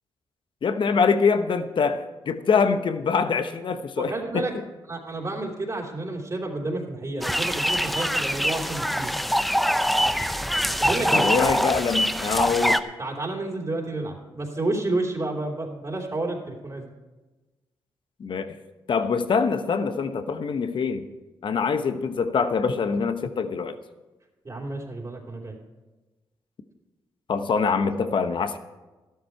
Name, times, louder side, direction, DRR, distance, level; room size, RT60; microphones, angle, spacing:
voice 1, 0.6-4.5 11.1-12.8 18.2-18.6 18.9-21.0 21.4-23.8 27.3-28.6, left 5 dB, 60° left, 10 dB, 1.0 m, -24 dB
voice 2, 4.0-4.5 4.9-9.1 10.8-11.3 13.0-16.8 24.4-25.5, right 2 dB, 35° right, -2 dB, 3.3 m, -30 dB
sound 1, 7.2-12.8, equal, ahead, 0.7 m, -24 dB
13.0 x 12.0 x 4.6 m, 1.2 s
supercardioid pair, 55°, 9 cm